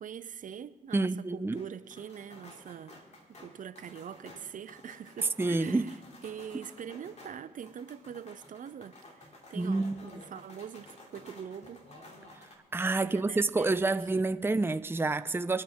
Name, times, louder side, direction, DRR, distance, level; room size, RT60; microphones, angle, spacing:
voice 1, 0.0-3.0 3.3-11.8 12.9-14.0, right 8 dB, 60° right, 0.7 m, -44 dB
voice 2, 0.9-1.6 5.4-5.9 9.5-10.0 12.7-15.6, right 3 dB, 15° right, 0.6 m, -28 dB
sound 1, 1.6-12.6, left 1 dB, 50° left, 3.1 m, -53 dB
23.5 x 9.3 x 3.6 m
hypercardioid pair, 40°, 15 cm